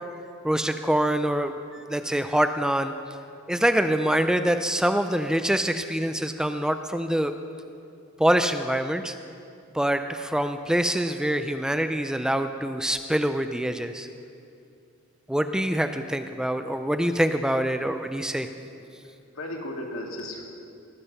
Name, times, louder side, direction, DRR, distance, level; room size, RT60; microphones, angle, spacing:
voice 1, 0.4-2.9 3.5-7.3 8.2-9.1 9.7-14.1 15.3-18.5, right 1 dB, 5° right, 8 dB, 0.3 m, -25 dB
voice 2, 18.5-20.4, left 1 dB, 75° left, 0 dB, 1.9 m, -37 dB
19.0 x 7.4 x 5.4 m, 2.5 s
head